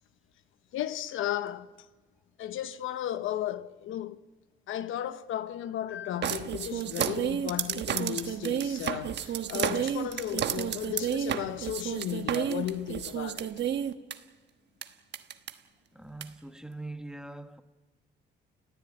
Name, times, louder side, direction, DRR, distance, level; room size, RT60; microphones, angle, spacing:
voice 1, 0.7-1.7 2.4-4.2 4.7-13.5, left 12 dB, 80° left, 0.9 m, -34 dB
sound 1, 6.2-14.1 14.8-14.9 15.1-15.5 16.2-16.3, right 9 dB, 60° right, 1.2 m, -31 dB
voice 2, 15.9-17.6, right 2 dB, 5° right, 1.3 m, -42 dB
29.5 x 15.5 x 8.7 m
cardioid pair, 90°, 20 cm